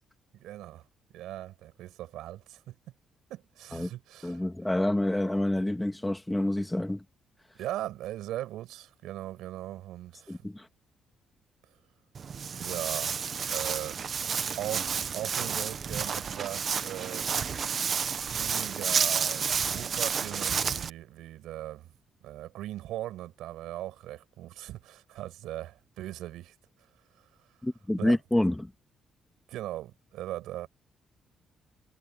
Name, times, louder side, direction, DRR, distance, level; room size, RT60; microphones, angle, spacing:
voice 1, 0.3-0.8 1.1-2.7 3.3-4.4 7.5-10.5 12.6-14.0 14.5-17.3 18.2-21.9 22.2-26.5 27.2-27.3 28.0-28.2 29.5-30.7, right 14 dB, 90° right, 6.4 m, -39 dB
voice 2, 4.2-7.0 10.3-10.6 27.6-28.7, left 1 dB, 10° left, 2.4 m, -28 dB
Walk footsteps, 12.1-20.9, right 6 dB, 50° right, 1.2 m, -30 dB
cardioid pair, 90°, 0 cm